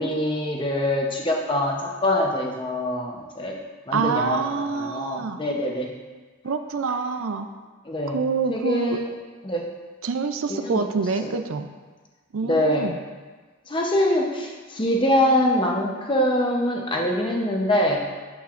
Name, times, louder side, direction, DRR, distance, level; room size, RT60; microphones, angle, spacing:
voice 1, 0.0-3.6 3.9-5.9 7.8-8.2 8.5-9.1 9.4-9.7 10.5-10.8 11.2-11.3 12.4-12.9 13.7-18.1, left 1 dB, 20° left, 0 dB, 0.8 m, -24 dB
voice 2, 3.9-5.4 6.4-7.5 8.1-9.0 10.0-11.7 12.3-13.0, right 4 dB, 65° right, 8 dB, 0.4 m, -26 dB
8.4 x 7.9 x 2.5 m, 1.4 s
head